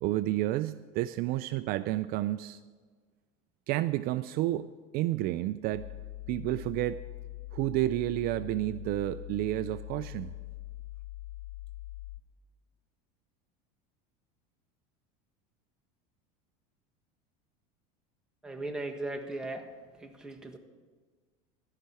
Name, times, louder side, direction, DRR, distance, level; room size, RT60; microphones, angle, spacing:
voice 1, 0.0-2.6 3.7-5.9 6.3-7.0 7.5-10.3, right 15 dB, 50° right, 13 dB, 0.4 m, -30 dB
sound 1, 5.7-12.2, left 16 dB, 75° left, 0.5 m, -43 dB
voice 2, 18.4-19.7 20.0-20.6, right 2 dB, 5° right, 1 dB, 1.4 m, -37 dB
13.5 x 5.8 x 9.4 m, 1.5 s
supercardioid pair, 110°, 19 cm